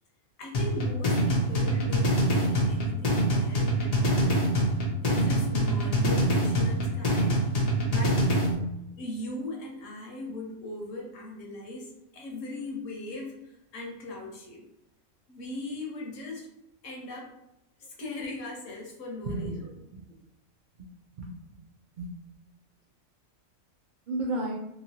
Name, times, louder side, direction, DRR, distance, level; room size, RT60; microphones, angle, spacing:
voice 1, 0.4-4.4 5.0-7.4 7.9-8.2 9.0-14.6 15.3-16.5 16.8-17.3 17.8-19.7, left 2 dB, 70° left, -1 dB, 1.1 m, -39 dB
sound 1, 0.5-8.5, right 1 dB, 40° left, 0.6 m, -25 dB
voice 2, 19.2-20.0 21.1-21.6 22.0-22.1 24.1-24.6, right 2 dB, 85° right, -1 dB, 0.4 m, -33 dB
2.9 x 2.5 x 2.8 m, 0.85 s
omnidirectional pair, 1.4 m